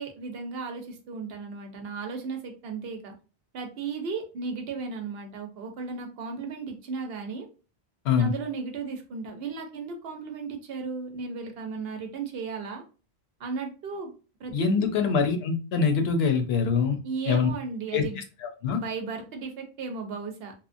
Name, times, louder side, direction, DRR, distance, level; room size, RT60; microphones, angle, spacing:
voice 1, 0.0-3.1 3.5-7.5 8.2-12.8 13.4-14.1 14.4-14.9 17.0-18.2 18.8-20.5, right 4 dB, 70° right, 4 dB, 0.8 m, -35 dB
voice 2, 14.5-17.0 17.3-17.5 17.9-18.8, left 5 dB, 75° left, 6 dB, 0.8 m, -24 dB
2.9 x 2.1 x 2.5 m, 0.34 s
omnidirectional pair, 1.1 m